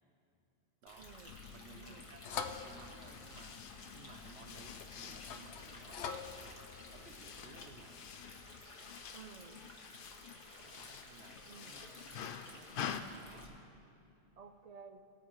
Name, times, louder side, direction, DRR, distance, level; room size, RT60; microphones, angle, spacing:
Stream, 0.9-13.5, left 1 dB, 30° left, 1.3 m, -55 dB
voice 1, 1.0-1.4 1.7-2.1 9.1-9.7 11.4-11.8 14.4-15.0, right 5 dB, 45° right, 8 dB, 0.5 m, -54 dB
sound 1, 1.3-8.6, left 6 dB, 80° left, 0.9 m, -48 dB
voice 2, 1.5-8.1 10.6-13.6, right 4 dB, 75° right, 5 dB, 1.1 m, -59 dB
sound 2, 2.3-13.0, left 8 dB, 60° left, 0.7 m, -49 dB
20.0 x 8.9 x 3.1 m, 2.7 s
omnidirectional pair, 1.1 m